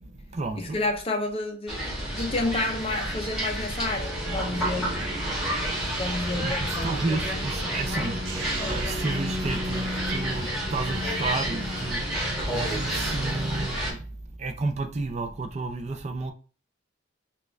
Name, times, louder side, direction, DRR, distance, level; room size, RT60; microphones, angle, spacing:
voice 1, 0.0-0.8 6.4-8.1 8.7-12.0 12.5-14.0 14.4-16.3, right 3 dB, 35° right, 0.3 m, -32 dB
voice 2, 0.5-5.0 6.0-7.4, left 2 dB, 30° left, 0.5 m, -30 dB
sound 1, 1.7-13.9, right 1 dB, ahead, 1.2 m, -30 dB
sound 2, 4.0-13.7, equal, 80° right, 0.6 m, -35 dB
4.5 x 2.3 x 2.2 m
head